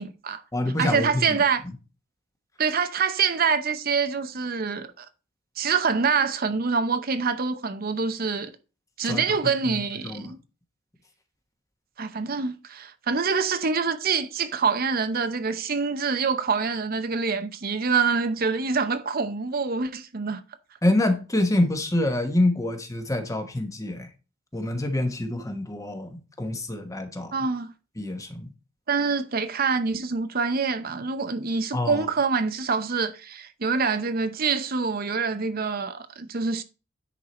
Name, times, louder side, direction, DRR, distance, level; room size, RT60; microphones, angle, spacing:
voice 1, 0.0-0.4 0.8-1.6 2.6-5.1 5.6-8.5 9.0-10.4 12.0-20.4 27.3-27.7 28.9-36.6, right 5 dB, 45° right, 0.7 m, -25 dB
voice 2, 0.5-1.4 9.0-9.4 10.0-10.3 20.8-24.1 24.5-27.3 28.0-28.5 31.7-32.0, left 1 dB, 15° left, 1.1 m, -26 dB
10.0 x 4.6 x 4.2 m
head